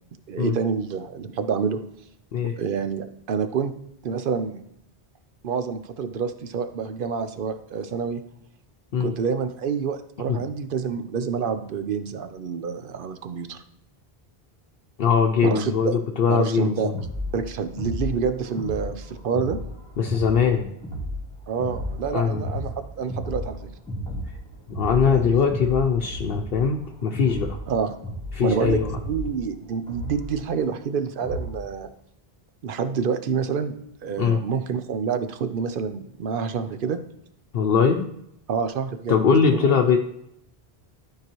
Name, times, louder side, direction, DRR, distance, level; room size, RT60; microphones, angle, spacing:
voice 1, 0.3-1.8 2.6-3.7 4.0-4.6 5.4-8.2 9.0-13.6 15.4-16.0 16.3-16.9 17.3-19.6 21.5-23.6 25.0-25.4 27.7-27.9 28.4-31.9 32.6-33.8 34.0-37.0 38.5-39.7, right 6 dB, 60° right, 10 dB, 0.8 m, -28 dB
voice 2, 15.0-17.0 20.0-20.7 22.1-22.5 24.7-27.6 28.3-28.9 34.2-34.4 37.5-38.1 39.1-40.0, left 6 dB, 70° left, 2 dB, 0.8 m, -21 dB
sound 1, 16.9-31.7, equal, 5° left, 1.7 m, -34 dB
12.0 x 4.9 x 3.0 m, 0.77 s
omnidirectional pair, 1.0 m